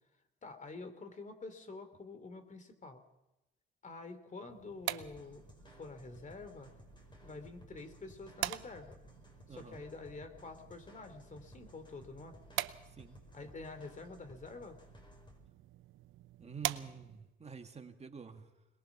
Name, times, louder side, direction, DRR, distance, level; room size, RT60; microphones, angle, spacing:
voice 1, 0.4-3.0 3.8-6.7 7.2-9.0 9.6-12.4 13.3-14.8, left 3 dB, 40° left, 9 dB, 3.0 m, -48 dB
sound 1, 4.5-17.4, right 14 dB, 85° right, 0.8 m, -45 dB
sound 2, 5.0-15.4, left 3 dB, 25° left, 5.1 m, -59 dB
voice 2, 9.5-9.8 12.8-13.2 16.4-18.7, right 6 dB, 35° right, 5 dB, 1.9 m, -48 dB
22.5 x 21.0 x 6.0 m, 0.95 s
cardioid pair, 90°, 20 cm